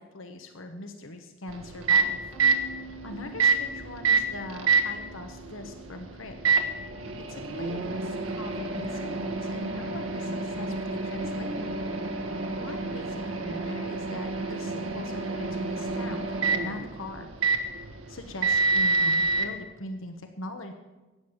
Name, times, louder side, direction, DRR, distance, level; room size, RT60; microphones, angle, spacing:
voice 1, 0.0-2.2 3.0-6.4 7.3-11.7 12.2-17.3 17.7-17.8 18.1-20.7, left 2 dB, 85° left, 6 dB, 1.2 m, -41 dB
Microwave oven, 1.5-19.5, right 4 dB, 85° right, 1.4 m, -28 dB
sound 1, 2.3-11.8, right 2 dB, 30° left, 4.1 m, -50 dB
Bass guitar, 11.2-13.7, left 3 dB, 25° right, 1.3 m, -44 dB
14.5 x 9.1 x 7.2 m, 1.1 s
head